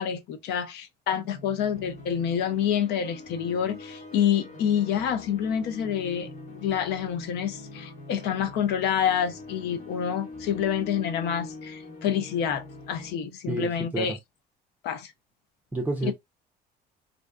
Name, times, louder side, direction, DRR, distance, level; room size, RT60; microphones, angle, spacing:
voice 1, 0.0-6.3 6.5-14.2 14.8-15.1 16.1-16.2, left 8 dB, 85° left, 0.6 m, -27 dB
sound 1, 1.1-13.1, left 3 dB, 50° left, 1.1 m, -43 dB
voice 2, 13.5-14.2 15.7-16.1, right 1 dB, 10° right, 0.5 m, -29 dB
2.5 x 2.2 x 2.4 m
cardioid pair, 110°, 17 cm